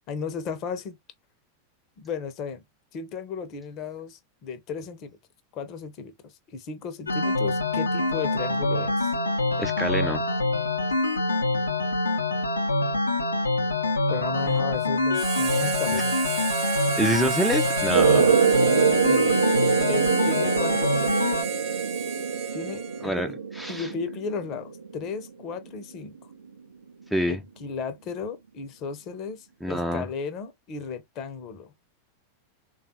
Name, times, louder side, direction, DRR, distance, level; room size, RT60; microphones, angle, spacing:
voice 1, 0.1-1.0 2.0-2.6 2.9-5.2 5.5-9.1 14.1-16.2 19.0-19.5 19.9-21.1 22.5-23.3 23.7-26.1 27.3-31.7, left 5 dB, 35° left, 0.6 m, -35 dB
sound 1, 7.1-21.4, left 2 dB, 80° left, 0.6 m, -25 dB
voice 2, 9.6-10.2 17.0-18.4 23.0-23.9 27.1-27.4 29.6-30.1, equal, ahead, 0.4 m, -27 dB
Harmonica, 15.1-23.2, right 6 dB, 40° right, 0.8 m, -32 dB
sound 2, 17.9-25.1, right 6 dB, 75° right, 0.5 m, -24 dB
3.6 x 2.3 x 2.7 m
figure-of-eight pair, 90°, 0 cm